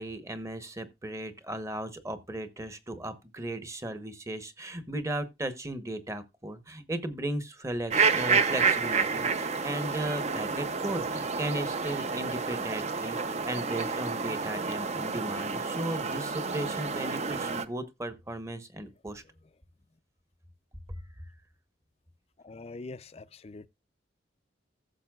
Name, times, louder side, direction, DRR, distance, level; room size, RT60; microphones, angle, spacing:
voice 1, 0.0-19.2 20.9-21.0, right 1 dB, 15° right, 1.0 m, -36 dB
sound 1, 7.9-17.7, right 5 dB, 40° right, 0.6 m, -29 dB
voice 2, 22.4-23.7, left 3 dB, 35° left, 0.4 m, -43 dB
15.0 x 6.8 x 2.3 m
head